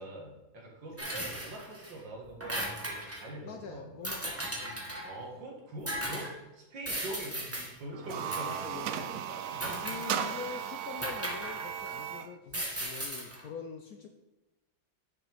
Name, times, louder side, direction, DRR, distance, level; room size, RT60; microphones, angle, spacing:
voice 1, 0.0-3.9 5.0-10.1, right 1 dB, 70° right, -2 dB, 2.4 m, -44 dB
sound 1, 1.0-1.9 2.2-3.3 4.0-5.2 5.9-6.3 6.9-7.7 8.3-8.7 9.6-10.4 11.0-12.0 12.5-13.4, right 1 dB, 10° right, 1.1 m, -37 dB
voice 2, 3.4-5.4 8.4-9.2 9.7-14.1, left 6 dB, 65° left, 4 dB, 0.9 m, -45 dB
sound 2, 7.9-12.3, right 9 dB, 90° right, 0.7 m, -36 dB
9.8 x 6.1 x 3.5 m, 1.1 s
omnidirectional pair, 2.1 m